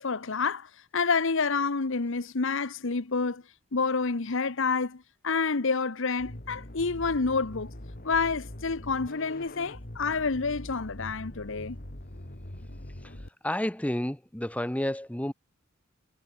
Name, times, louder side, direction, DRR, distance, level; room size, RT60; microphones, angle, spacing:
voice 1, 0.0-3.4 3.7-7.7 8.0-11.8, left 4 dB, 65° left, 1.0 m, -28 dB
sound 1, 6.2-13.3, left 1 dB, 45° left, 2.6 m, -43 dB
voice 2, 13.4-15.3, left 1 dB, 5° left, 0.9 m, -30 dB
head